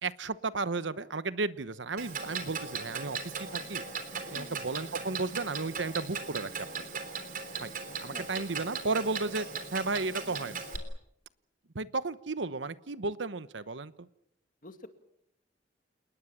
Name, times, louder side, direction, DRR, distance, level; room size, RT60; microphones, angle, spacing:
voice 1, 0.0-3.8 4.3-6.7 7.6-7.7 8.0-9.5 9.7-10.6 11.7-14.1, right 3 dB, 80° right, 15 dB, 1.0 m, -34 dB
Clock, 2.0-10.8, right 5 dB, 45° right, 3.5 m, -38 dB
voice 2, 2.3-2.7 4.3-4.8 7.9-8.5 10.2-10.5 14.6-14.9, left 1 dB, 45° left, 8 dB, 2.2 m, -50 dB
28.5 x 20.0 x 7.3 m, 0.74 s
head